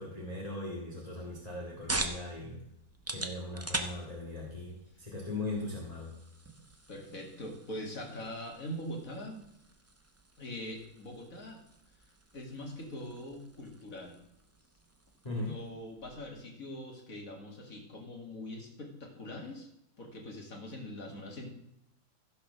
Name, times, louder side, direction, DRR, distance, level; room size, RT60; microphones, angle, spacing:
voice 1, 0.0-2.6 3.1-6.1 15.2-15.6, left 2 dB, 20° left, -4 dB, 2.0 m, -39 dB
sound 1, 1.2-16.4, right 2 dB, 20° right, 0.4 m, -44 dB
voice 2, 6.9-9.4 10.4-11.6 12.3-14.2 15.3-19.7 20.0-21.5, left 1 dB, 50° left, 1 dB, 2.6 m, -42 dB
15.0 x 5.1 x 6.6 m, 0.76 s
omnidirectional pair, 1.9 m